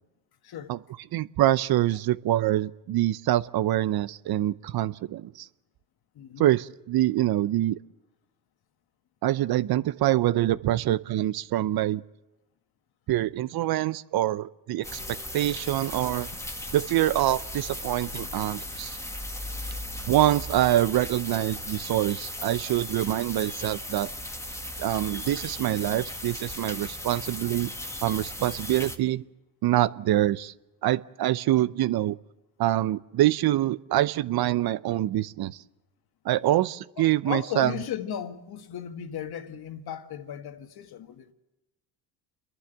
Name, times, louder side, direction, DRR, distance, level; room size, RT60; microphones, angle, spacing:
voice 1, 0.4-0.7 6.1-6.5 36.4-36.5 37.0-41.3, left 9 dB, 55° left, 1.7 m, -36 dB
voice 2, 1.1-5.5 6.4-7.8 9.2-12.0 13.1-16.3 16.7-19.0 20.1-24.1 24.8-27.7 28.0-29.2 29.6-30.5 30.8-32.2 32.6-35.6 36.2-37.7, right 14 dB, 55° right, 0.7 m, -25 dB
Rainy Day with Various Birds, 14.8-29.0, left 1 dB, 5° left, 1.8 m, -37 dB
29.5 x 11.5 x 8.0 m
supercardioid pair, 90°, 44 cm